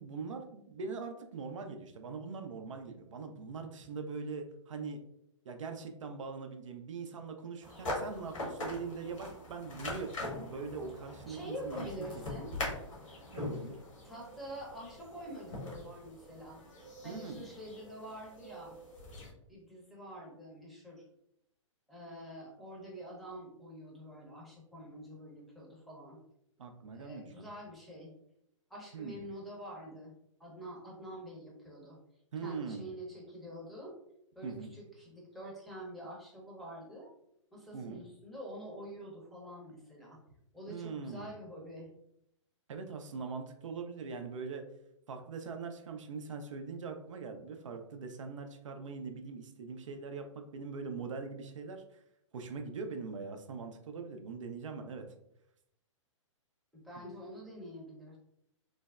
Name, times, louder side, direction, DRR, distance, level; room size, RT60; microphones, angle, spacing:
voice 1, 0.0-5.0 5.4-12.2 13.3-13.8 17.0-17.5 26.6-27.5 28.9-29.2 32.3-32.9 34.4-34.7 37.7-38.0 40.7-41.3 42.7-44.6 45.1-52.0 52.3-55.1, right 5 dB, 75° right, 5 dB, 0.4 m, -42 dB
sound 1, 7.6-19.3, left 2 dB, 85° left, 1.2 m, -43 dB
voice 2, 11.3-12.5 14.0-16.6 17.0-18.8 19.2-21.0 21.9-26.2 26.9-28.1 28.7-30.1 30.4-32.0 32.4-33.9 34.4-37.1 37.5-40.2 40.5-41.9 56.7-58.2, equal, ahead, -4 dB, 0.6 m, -46 dB
3.2 x 2.0 x 2.3 m, 0.77 s
hypercardioid pair, 130°, 16 cm